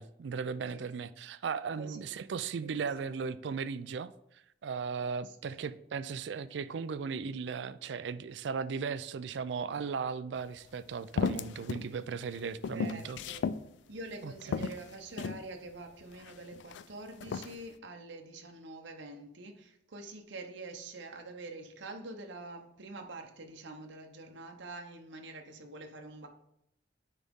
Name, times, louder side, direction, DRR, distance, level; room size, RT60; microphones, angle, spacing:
voice 1, 0.0-4.1 4.6-13.2 14.2-14.6, right 5 dB, 70° right, 0.4 m, -37 dB
voice 2, 1.8-2.2 2.6-3.1 5.2-5.6 12.7-13.5 13.9-26.3, right 2 dB, 90° right, 0.8 m, -46 dB
sound 1, 10.4-10.5 11.2-11.9 12.2-13.6 14.1-14.2 14.5-15.4 16.1-16.8 17.2-17.6, left 6 dB, 70° left, 0.3 m, -34 dB
9.7 x 4.1 x 3.6 m
head